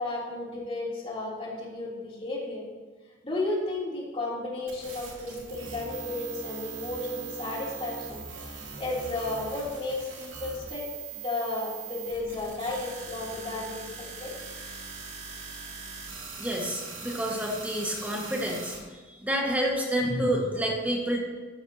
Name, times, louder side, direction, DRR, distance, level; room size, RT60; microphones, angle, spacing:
voice 1, 0.0-2.6 3.2-8.2 8.8-10.8 11.1-14.3, left 2 dB, 30° left, -5 dB, 3.1 m, -33 dB
sound 1, 4.7-18.8, right 5 dB, 90° right, 2.5 m, -41 dB
voice 2, 16.4-18.7 19.2-21.2, equal, 10° right, -1 dB, 1.7 m, -28 dB
13.5 x 11.5 x 2.9 m, 1.4 s
head